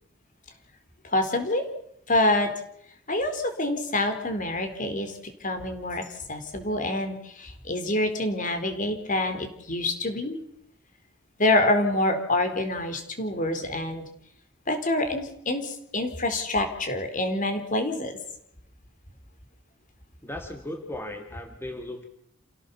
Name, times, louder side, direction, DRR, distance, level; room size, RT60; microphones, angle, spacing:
voice 1, 1.0-1.7 2.1-2.5 3.1-10.4 11.4-14.0 14.7-18.2, left 1 dB, 45° left, 7 dB, 4.2 m, -26 dB
voice 2, 20.2-22.0, left 1 dB, 10° left, 4 dB, 2.3 m, -37 dB
28.5 x 17.0 x 7.2 m, 0.72 s
head